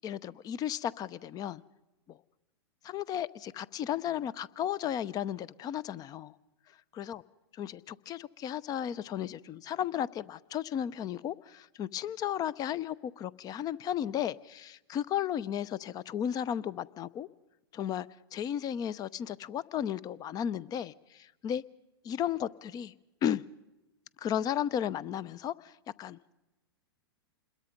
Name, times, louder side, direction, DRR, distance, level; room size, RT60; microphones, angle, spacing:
voice 1, 0.0-1.6 2.1-2.2 2.8-6.3 7.0-7.2 7.6-17.3 17.7-21.6 22.0-23.0 23.2-23.4 24.2-25.7 26.0-26.2, left 10 dB, 30° left, 22 dB, 0.7 m, -34 dB
27.5 x 21.5 x 5.2 m, 1.0 s
hypercardioid pair, 115°, 13 cm